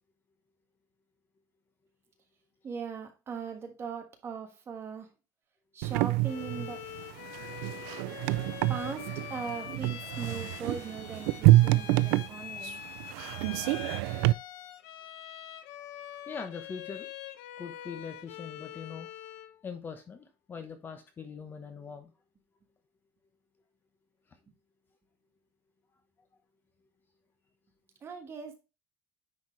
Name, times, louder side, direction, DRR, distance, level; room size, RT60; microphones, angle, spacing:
voice 1, 2.6-5.1 5.7-6.8 8.7-12.9 28.0-28.6, right 6 dB, 25° right, 1.5 m, -40 dB
sound 1, 5.8-14.3, right 18 dB, 90° right, 0.4 m, -27 dB
Bowed string instrument, 6.2-19.6, left 11 dB, 80° left, 1.1 m, -44 dB
voice 2, 16.3-17.1 17.6-19.1 19.6-22.1, left 6 dB, 20° left, 1.0 m, -42 dB
9.7 x 4.5 x 3.3 m
cardioid pair, 170°, 10 cm